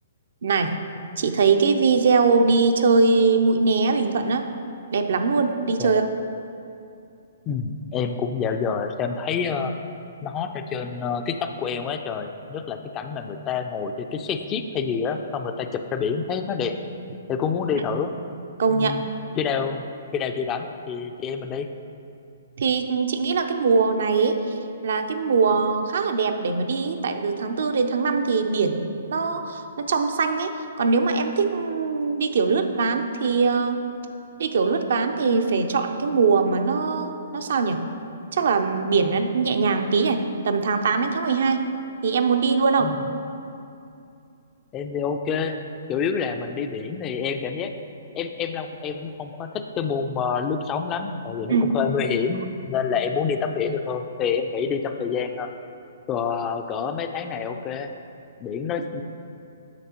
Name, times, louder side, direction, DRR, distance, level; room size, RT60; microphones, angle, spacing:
voice 1, 0.4-0.8 1.2-4.5 4.9-6.0 18.6-19.0 22.6-33.8 34.4-37.8 38.3-41.7 42.0-43.0 51.5-51.7, right 4 dB, 65° right, 6 dB, 0.5 m, -22 dB
voice 2, 7.5-9.7 10.2-16.7 17.3-18.1 18.6-19.0 19.4-19.8 20.1-21.7 42.8-43.0 44.7-45.6 45.9-47.7 48.1-55.5 56.1-57.9 58.4-59.0, left 6 dB, 25° left, 7 dB, 0.4 m, -27 dB
8.9 x 6.0 x 2.9 m, 2.6 s
hypercardioid pair, 130°, 0 cm